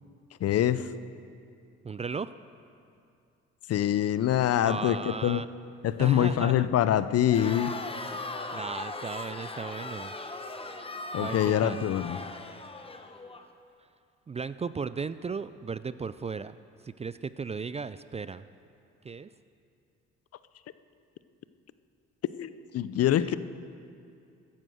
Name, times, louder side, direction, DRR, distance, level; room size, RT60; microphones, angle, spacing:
voice 1, 0.4-0.9 3.7-5.4 5.8-7.7 11.1-12.2 22.4-23.3, left 11 dB, 55° left, 15 dB, 0.6 m, -25 dB
voice 2, 1.8-2.3 4.6-5.5 6.0-6.7 8.1-8.3 8.5-10.1 11.2-11.8 14.3-16.6 16.8-18.4 19.0-19.3 23.2-23.3, right 5 dB, 20° right, 15 dB, 0.4 m, -36 dB
Crowd, 7.3-13.4, left 2 dB, 20° left, 1.1 m, -38 dB
14.5 x 10.0 x 6.4 m, 2.4 s
supercardioid pair, 65°, 29 cm